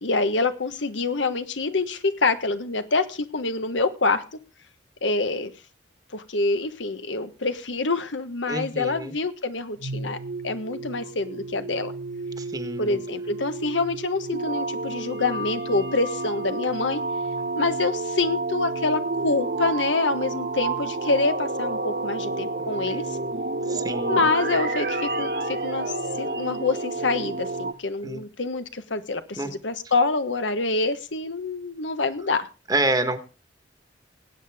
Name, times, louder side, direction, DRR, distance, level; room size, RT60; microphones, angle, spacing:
voice 1, 0.0-4.2 5.0-5.5 6.1-10.2 10.4-11.9 12.8-17.0 17.6-23.2 24.1-32.5, left 3 dB, 85° left, 9 dB, 1.3 m, -26 dB
voice 2, 8.5-9.1 12.4-13.0 22.6-23.4 23.7-24.3 28.0-28.2 29.4-29.5 32.7-33.2, right 2 dB, 20° right, 8 dB, 1.3 m, -28 dB
sound 1, 9.8-27.7, right 2 dB, 60° right, 1.2 m, -30 dB
20.0 x 8.9 x 3.6 m, 0.32 s
head